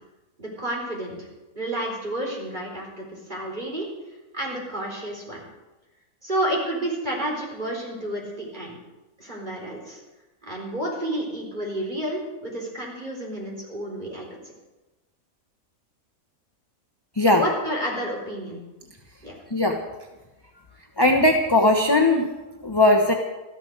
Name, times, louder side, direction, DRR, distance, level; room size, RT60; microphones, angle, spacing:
voice 1, 0.4-1.3 1.6-3.9 4.3-5.5 6.2-8.8 9.2-10.0 10.4-14.4 17.2-18.6 19.2-19.3, right 1 dB, 30° right, -1 dB, 4.2 m, -30 dB
voice 2, 19.5-19.8 21.0-22.3 22.6-23.1, left 2 dB, 20° left, 2 dB, 1.0 m, -18 dB
14.0 x 12.5 x 6.5 m, 1.1 s
omnidirectional pair, 1.5 m